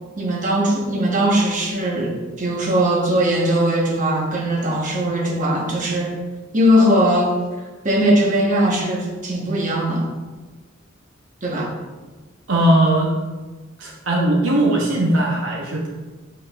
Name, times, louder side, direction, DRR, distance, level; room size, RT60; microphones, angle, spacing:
voice 1, 0.2-6.1 6.5-7.3 7.8-10.1 11.4-11.7, equal, 40° right, -2 dB, 1.1 m, -19 dB
voice 2, 12.5-13.1 13.8-15.9, right 1 dB, 70° right, -2 dB, 0.8 m, -18 dB
7.4 x 5.4 x 2.4 m, 1.3 s
head